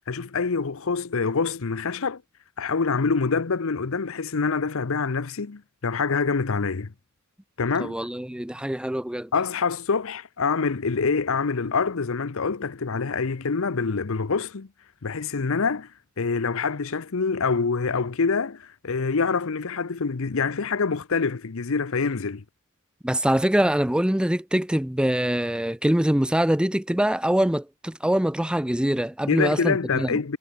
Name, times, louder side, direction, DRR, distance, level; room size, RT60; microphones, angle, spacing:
voice 1, 0.1-2.2 2.6-6.9 7.6-8.0 9.3-14.7 15.0-15.9 16.2-22.4 29.3-30.4, left 4 dB, 65° left, 0.8 m, -25 dB
voice 2, 7.8-9.3 23.0-30.1, right 1 dB, 5° right, 0.5 m, -24 dB
head